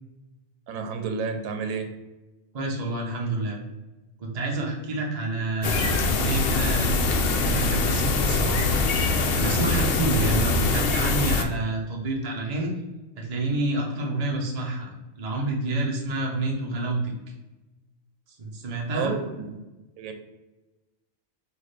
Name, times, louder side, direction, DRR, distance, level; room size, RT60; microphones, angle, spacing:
voice 1, 0.7-1.9 18.9-19.6 20.0-20.1, right 5 dB, 90° right, 6 dB, 1.0 m, -30 dB
voice 2, 2.5-3.6 4.2-7.0 7.4-8.8 9.3-12.7 13.2-17.1 18.4-19.1, right 2 dB, 35° right, -1 dB, 0.8 m, -28 dB
sound 1, 5.6-11.4, left 3 dB, 60° left, 0.6 m, -23 dB
6.1 x 2.5 x 3.2 m, 1.1 s
omnidirectional pair, 1.4 m